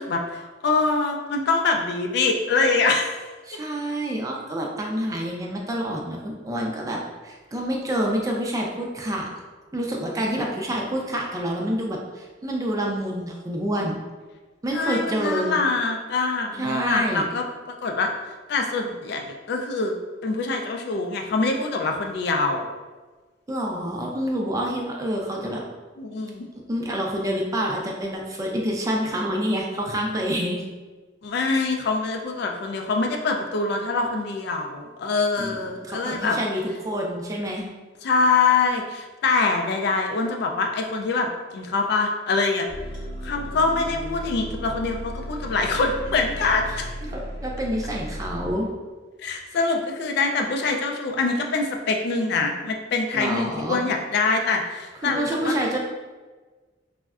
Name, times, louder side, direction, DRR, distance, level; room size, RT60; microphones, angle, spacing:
voice 1, 0.0-3.2 14.7-17.4 17.8-18.1 18.5-22.7 26.0-26.5 31.2-36.4 38.0-42.7 43.2-46.9 49.2-55.6, left 3 dB, 60° left, 3 dB, 0.3 m, -24 dB
voice 2, 3.5-9.3 9.7-13.9 14.6-15.6 16.5-17.3 23.5-25.6 26.7-30.6 35.4-37.7 47.1-48.7 53.1-53.8 55.0-55.8, equal, 20° right, -1 dB, 0.3 m, -27 dB
sound 1, 42.7-48.5, equal, 25° left, 0.8 m, -34 dB
3.4 x 2.1 x 2.3 m, 1.3 s
head